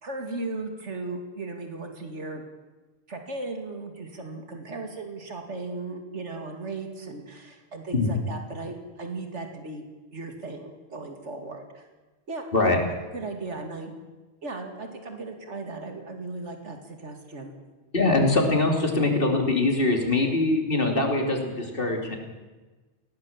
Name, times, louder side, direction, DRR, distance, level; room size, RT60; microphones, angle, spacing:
voice 1, 0.0-2.4 3.1-11.8 12.3-12.7 13.1-13.9 14.4-17.5, right 3 dB, 85° right, 4 dB, 2.7 m, -36 dB
voice 2, 17.9-22.2, left 2 dB, 50° left, 2 dB, 3.3 m, -23 dB
20.5 x 17.5 x 7.3 m, 1.2 s
omnidirectional pair, 1.2 m